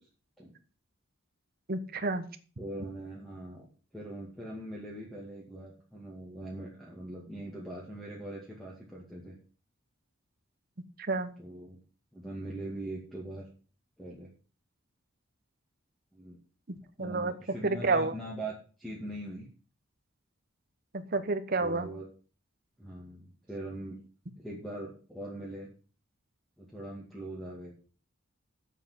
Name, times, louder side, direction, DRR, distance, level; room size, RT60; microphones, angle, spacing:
voice 1, 1.7-2.2 11.0-11.3 16.7-17.3 17.6-18.1 20.9-21.9, right 3 dB, 50° right, 11 dB, 1.1 m, -30 dB
voice 2, 2.6-3.7 3.9-9.3 11.4-11.8 12.1-13.4 14.0-14.3 16.1-16.4 17.0-18.5 18.8-19.5 21.6-22.0 22.8-24.0 24.4-25.7 26.6-27.7, right 1 dB, ahead, -4 dB, 2.3 m, -41 dB
7.4 x 7.3 x 7.5 m, 0.38 s
head